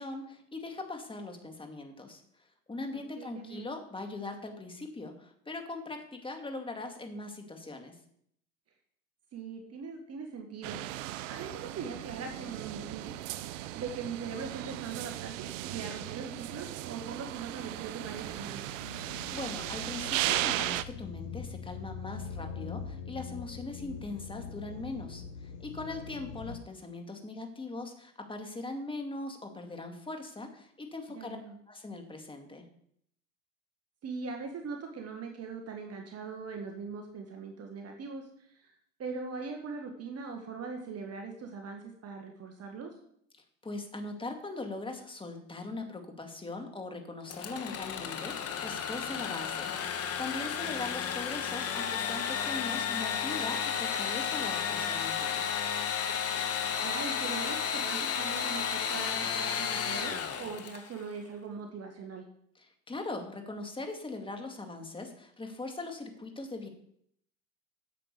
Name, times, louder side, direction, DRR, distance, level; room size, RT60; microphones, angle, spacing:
voice 1, 0.0-8.0 18.9-19.0 19.3-31.4 31.7-32.7 43.6-55.5 62.6-66.7, left 2 dB, 15° left, 4 dB, 2.1 m, -40 dB
voice 2, 2.9-3.6 9.3-10.8 11.2-13.2 13.7-18.7 31.1-31.6 34.0-38.7 39.0-42.9 56.8-62.3, right 5 dB, 40° right, 3 dB, 1.8 m, -41 dB
sound 1, 10.6-20.8, right 14 dB, 80° right, 0.7 m, -36 dB
sound 2, 18.0-26.6, left 6 dB, 70° left, 1.1 m, -43 dB
Engine / Sawing, 47.3-61.0, left 7 dB, 40° left, 1.4 m, -33 dB
8.5 x 7.6 x 6.8 m, 0.69 s
hypercardioid pair, 80°, 38 cm